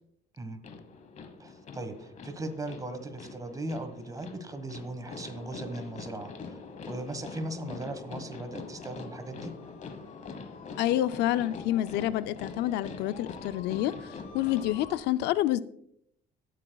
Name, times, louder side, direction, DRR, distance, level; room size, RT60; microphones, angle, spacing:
voice 1, 0.4-0.7 1.4-9.5, right 2 dB, 20° right, 1.5 m, -38 dB
sound 1, 0.6-15.0, left 4 dB, 45° left, 1.3 m, -44 dB
voice 2, 10.8-15.6, left 13 dB, 85° left, 0.4 m, -28 dB
17.0 x 8.2 x 2.3 m
cardioid pair, 110°, 17 cm